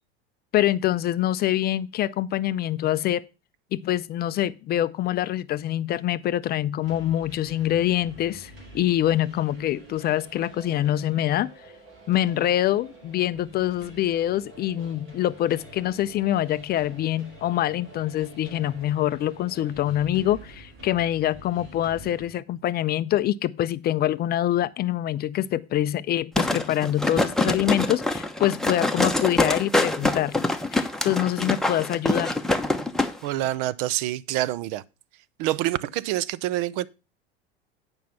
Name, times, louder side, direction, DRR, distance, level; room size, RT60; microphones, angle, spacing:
voice 1, 0.5-3.2 3.7-11.5 12.1-32.4, left 12 dB, 30° left, 0.4 m, -25 dB
sound 1, 6.8-22.3, right 2 dB, 40° right, 4.9 m, -47 dB
sound 2, 26.4-33.1 33.4-33.5, left 2 dB, ahead, 1.0 m, -25 dB
voice 2, 33.2-34.8 35.4-36.9, right 15 dB, 55° right, 0.6 m, -26 dB
9.3 x 5.3 x 5.8 m
hypercardioid pair, 85°, 32 cm